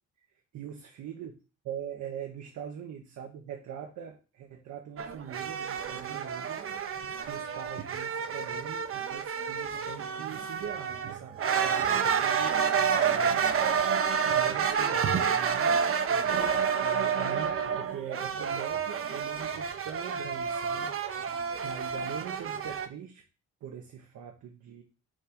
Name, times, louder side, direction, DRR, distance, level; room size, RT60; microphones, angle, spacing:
voice 1, 0.5-1.3 1.6-13.5 14.0-23.2 23.6-24.8, right 8 dB, 75° right, 2 dB, 1.1 m, -43 dB
sound 1, 5.0-22.9, right 7 dB, 45° right, 0.8 m, -29 dB
5.5 x 3.6 x 5.1 m, 0.32 s
cardioid pair, 90°, 30 cm